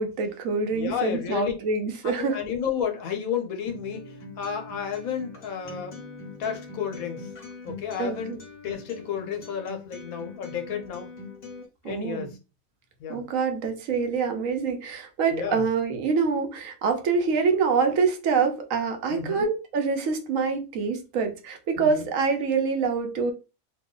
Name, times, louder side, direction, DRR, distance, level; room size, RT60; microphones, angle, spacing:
voice 1, 0.0-2.4 8.0-8.4 11.8-12.3 13.1-23.3, right 5 dB, 70° right, 1.0 m, -26 dB
voice 2, 0.7-1.5 2.0-6.0 6.4-7.3 7.6-8.4 8.6-11.1 11.8-12.4 13.0-13.2 15.3-15.7 19.1-19.5 21.8-22.1, left 8 dB, 80° left, 1.2 m, -32 dB
Acoustic guitar, 3.7-11.6, left 3 dB, 45° left, 1.0 m, -42 dB
2.9 x 2.3 x 3.7 m
omnidirectional pair, 1.5 m